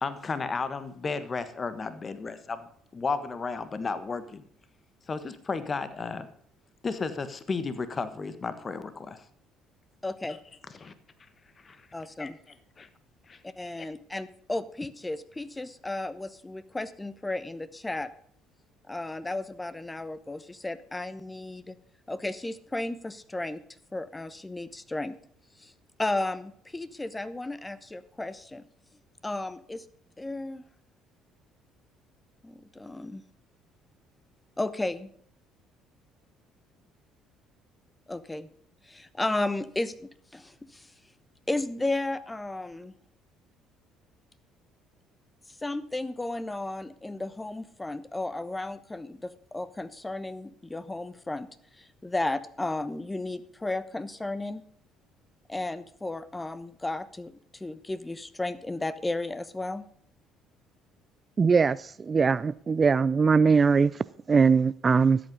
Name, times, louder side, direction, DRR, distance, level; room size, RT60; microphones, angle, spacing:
voice 1, 0.0-2.7 2.9-4.4 5.1-6.3 6.8-9.2 10.3-10.4 10.7-10.9 11.6-11.9 12.2-12.3 12.8-12.9 13.3-13.4, left 4 dB, 35° left, 1.4 m, -33 dB
voice 2, 10.0-10.4 11.9-12.4 13.4-18.1 18.9-21.7 22.1-23.6 23.9-25.1 25.6-25.7 26.0-28.6 29.2-29.8 30.2-30.6 32.4-33.2 34.6-35.1 38.1-38.5 38.9-40.9 41.5-42.9 45.6-51.5 51.8-54.6 55.5-59.8, left 2 dB, 15° left, 1.0 m, -34 dB
voice 3, 61.4-65.2, right 5 dB, 35° right, 0.4 m, -21 dB
13.0 x 8.4 x 5.4 m
hypercardioid pair, 65°, 0 cm